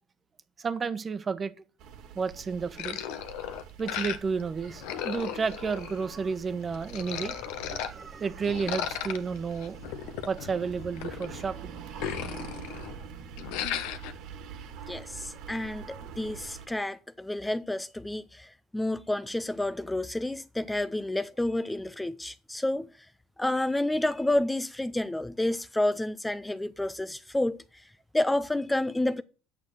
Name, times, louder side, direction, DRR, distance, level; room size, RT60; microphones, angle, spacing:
voice 1, 0.6-1.5 2.1-3.0 3.8-9.8 10.3-11.8, right 5 dB, 35° right, 1.0 m, -32 dB
sound 1, 1.8-16.7, right 7 dB, 65° right, 1.8 m, -45 dB
sound 2, 2.8-4.4 4.7-6.3 6.7-7.9 8.4-11.5 11.8-13.0 13.4-14.1, left 10 dB, 75° left, 1.0 m, -36 dB
voice 2, 14.9-23.1 23.4-29.2, left 1 dB, 10° left, 0.4 m, -30 dB
8.7 x 6.4 x 6.2 m
supercardioid pair, 80°, 0 cm